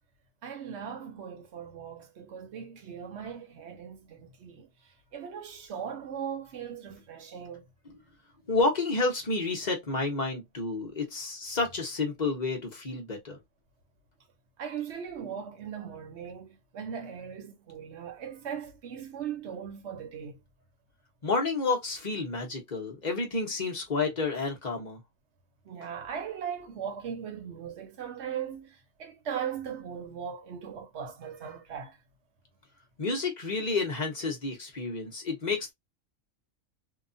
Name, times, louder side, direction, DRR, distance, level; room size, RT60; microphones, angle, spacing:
voice 1, 0.4-4.7 5.1-7.6 14.6-20.4 25.7-32.0, right 8 dB, 60° right, 1.0 m, -39 dB
voice 2, 8.5-13.4 21.2-25.0 33.0-35.7, left 3 dB, 35° left, 1.1 m, -30 dB
2.9 x 2.4 x 2.6 m
omnidirectional pair, 1.4 m